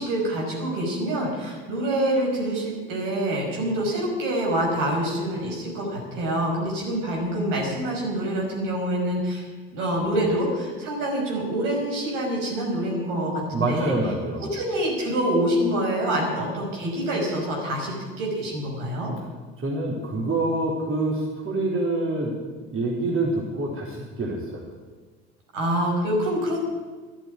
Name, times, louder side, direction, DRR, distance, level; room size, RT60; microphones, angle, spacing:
voice 1, 0.0-9.4 9.7-13.9 14.5-19.1 25.5-26.6, right 1 dB, 70° right, -1 dB, 5.8 m, -26 dB
voice 2, 13.5-14.5 19.6-22.3 22.7-24.6, right 2 dB, 40° right, -3 dB, 4.2 m, -26 dB
12.0 x 10.5 x 9.8 m, 1.4 s
hypercardioid pair, 65°, 33 cm